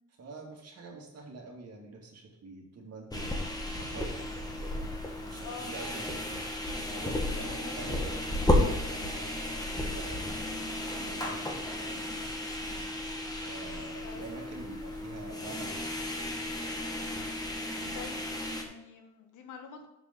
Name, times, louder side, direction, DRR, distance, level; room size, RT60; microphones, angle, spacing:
voice 1, 0.2-3.3 3.5-4.3 5.2-6.4 6.7-8.1 8.4-9.4 9.7-10.2 10.6-12.0 13.3-15.9, right 3 dB, 55° right, 0 dB, 2.5 m, -46 dB
sound 1, 3.1-18.6, left 1 dB, 10° left, 1.8 m, -33 dB
voice 2, 5.4-5.7 7.3-7.7 8.8-9.0 14.0-14.3 17.9-19.9, left 6 dB, 85° left, 5 dB, 1.4 m, -47 dB
7.2 x 5.3 x 6.7 m, 0.95 s
cardioid pair, 90°, 30 cm